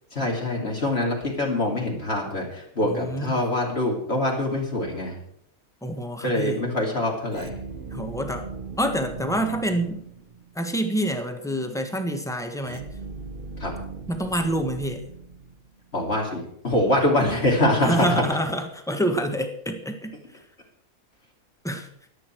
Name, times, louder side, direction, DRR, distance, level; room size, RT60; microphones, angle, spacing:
voice 1, 0.1-5.2 6.2-7.5 13.6-13.7 15.9-18.1, left 1 dB, 45° left, -1 dB, 2.9 m, -24 dB
voice 2, 2.8-3.4 5.8-6.6 7.9-8.5 8.8-10.0 10.5-12.9 14.1-15.0 17.8-20.2 21.6-21.9, equal, ahead, 5 dB, 1.2 m, -27 dB
sound 1, 7.3-10.6 12.6-15.9, right 4 dB, 40° right, 1.1 m, -38 dB
21.0 x 8.4 x 4.6 m, 0.72 s
omnidirectional pair, 1.5 m